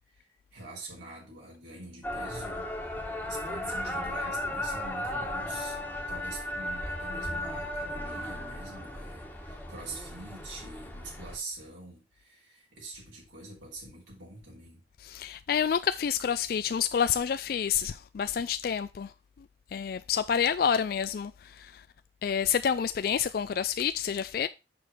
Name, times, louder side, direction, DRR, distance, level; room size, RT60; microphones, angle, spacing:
voice 1, 0.1-2.7 3.1-5.8 6.1-14.8, right 2 dB, 80° right, 4.2 m, -45 dB
sound 1, 2.0-11.4, left 1 dB, 10° left, 1.4 m, -35 dB
voice 2, 15.0-19.1 19.7-21.8 22.2-24.5, left 7 dB, 50° left, 0.3 m, -28 dB
7.0 x 6.2 x 4.4 m
head